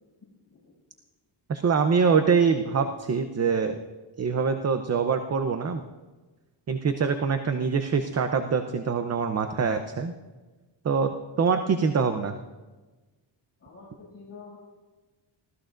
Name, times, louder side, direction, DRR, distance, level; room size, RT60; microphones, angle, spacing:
voice 1, 1.5-3.8 4.2-5.8 6.7-10.1 10.8-12.4, right 5 dB, 35° right, 7 dB, 0.7 m, -24 dB
voice 2, 13.6-14.6, left 4 dB, 30° left, -8 dB, 6.6 m, -47 dB
25.0 x 16.5 x 2.6 m, 1.2 s
wide cardioid pair, 150°, 46 cm